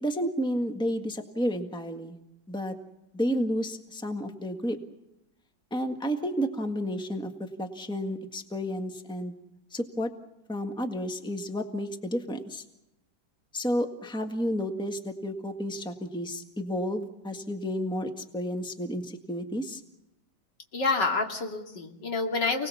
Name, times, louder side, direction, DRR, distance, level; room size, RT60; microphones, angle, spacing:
voice 1, 0.0-2.2 2.5-2.8 3.1-4.8 5.7-9.3 9.7-10.1 10.5-12.6 13.5-19.8, equal, 5° left, 5 dB, 1.6 m, -31 dB
voice 2, 20.7-22.7, left 3 dB, 75° left, 3 dB, 3.1 m, -28 dB
29.5 x 19.5 x 7.1 m, 0.89 s
omnidirectional pair, 1.9 m